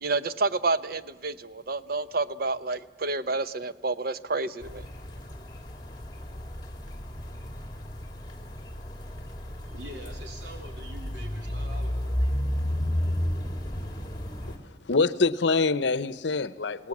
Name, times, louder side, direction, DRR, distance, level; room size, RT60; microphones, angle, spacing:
voice 1, 0.0-4.9, right 3 dB, 55° right, 0.8 m, -29 dB
sound 1, 4.6-14.6, equal, 25° left, 2.4 m, -33 dB
voice 2, 9.6-12.3, right 1 dB, 75° right, 3.5 m, -45 dB
voice 3, 14.9-16.9, left 4 dB, 80° left, 0.7 m, -25 dB
29.0 x 18.5 x 7.3 m
head